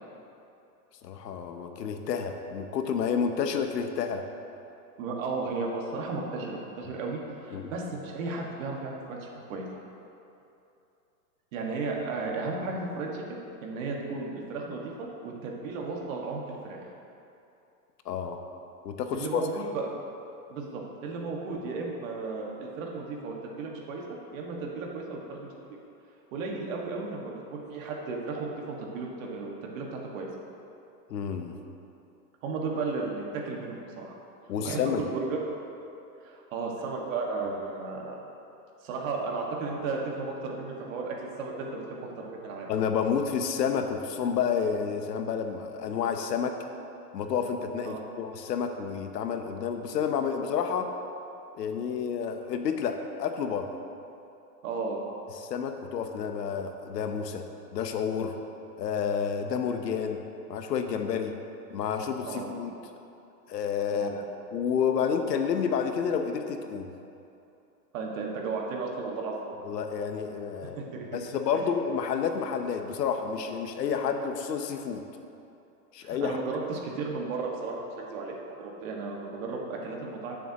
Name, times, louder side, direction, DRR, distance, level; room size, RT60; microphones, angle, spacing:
voice 1, 1.0-4.2 7.5-7.7 18.0-18.4 18.8-19.4 31.1-31.5 34.5-35.0 42.7-46.6 47.1-50.9 51.5-53.8 55.4-57.4 57.7-58.3 58.8-60.2 60.5-61.3 61.7-62.7 63.5-64.1 64.5-66.9 69.6-70.8 71.1-75.0 75.9-76.4, left 7 dB, 90° left, 6 dB, 1.0 m, -30 dB
voice 2, 5.0-9.7 11.5-16.9 19.1-19.9 20.5-24.0 24.3-25.5 26.3-30.3 32.4-34.1 34.6-35.4 36.2-38.2 38.8-42.7 47.8-48.0 54.6-55.0 62.3-62.6 63.9-64.2 67.9-69.4 70.6-71.1 76.0-80.4, right 3 dB, 55° right, -1 dB, 1.9 m, -34 dB
15.0 x 7.1 x 3.0 m, 2.8 s
supercardioid pair, 145°, 48 cm